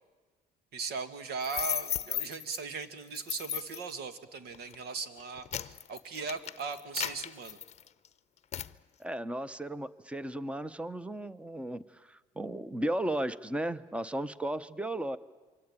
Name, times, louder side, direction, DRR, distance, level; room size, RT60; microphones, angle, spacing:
voice 1, 0.7-7.6, right 5 dB, 75° right, 10 dB, 2.1 m, -38 dB
sound 1, 1.4-2.6 3.1-3.9 4.5-4.8 5.2-8.1 8.5-8.7, left 9 dB, 40° left, 0.7 m, -35 dB
voice 2, 9.0-15.2, right 1 dB, 5° right, 15 dB, 0.9 m, -35 dB
27.0 x 23.5 x 9.0 m, 1.4 s
cardioid pair, 110°, 17 cm